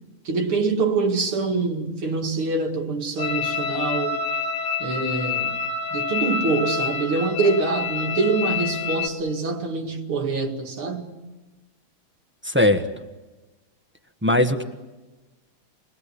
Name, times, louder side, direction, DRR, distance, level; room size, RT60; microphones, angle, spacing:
voice 1, 0.2-4.2 4.8-5.6 5.9-11.1, right 3 dB, 75° right, 3.1 m, -25 dB
sound 1, 3.2-9.1, left 5 dB, 70° left, 2.4 m, -27 dB
voice 2, 12.4-12.9 14.2-14.6, left 1 dB, 5° right, 1.0 m, -19 dB
28.5 x 21.5 x 8.5 m
omnidirectional pair, 2.4 m